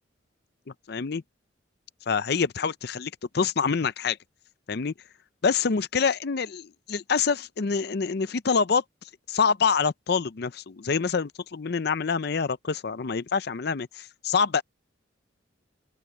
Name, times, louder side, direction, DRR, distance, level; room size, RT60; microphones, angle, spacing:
voice 1, 0.9-1.2 2.1-4.2 4.7-4.9 5.4-8.8 9.3-14.6, left 5 dB, 60° left, 0.6 m, -26 dB
open air
head